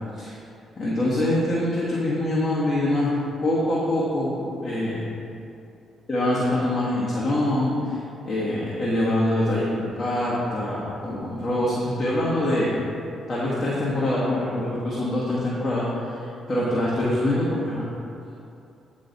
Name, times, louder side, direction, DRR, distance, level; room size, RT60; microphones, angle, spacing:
voice 1, 0.8-3.1 3.4-5.1 6.1-8.0 8.2-12.7 13.3-16.2 16.5-17.9, left 1 dB, 30° left, -8 dB, 1.2 m, -24 dB
9.3 x 3.1 x 4.0 m, 2.6 s
cardioid pair, 90°, 0 cm